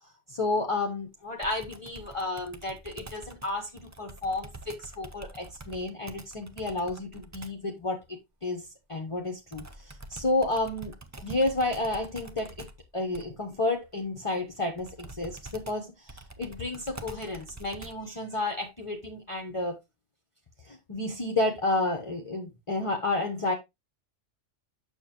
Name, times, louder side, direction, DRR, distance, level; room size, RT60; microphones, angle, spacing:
voice 1, 0.0-12.7 12.9-19.8 20.6-23.5, left 2 dB, 30° left, 1.0 m, -31 dB
Computer keyboard, 1.4-7.7 9.5-18.2, right 2 dB, 20° right, 0.5 m, -46 dB
6.9 x 6.6 x 3.0 m
omnidirectional pair, 1.2 m